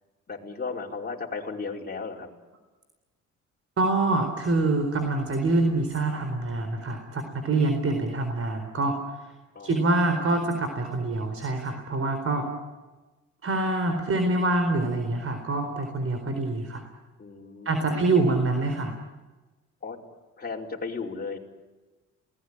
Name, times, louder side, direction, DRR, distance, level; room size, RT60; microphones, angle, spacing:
voice 1, 0.3-2.3 9.5-10.1 17.2-18.3 19.8-20.0 20.4-21.4, left 4 dB, 30° left, -1 dB, 5.2 m, -35 dB
voice 2, 3.8-9.3 9.6-12.5 13.4-16.9 17.6-18.9, right 2 dB, 50° right, 6 dB, 4.3 m, -25 dB
28.5 x 19.5 x 10.0 m, 1.2 s
cardioid pair, 90°, 30 cm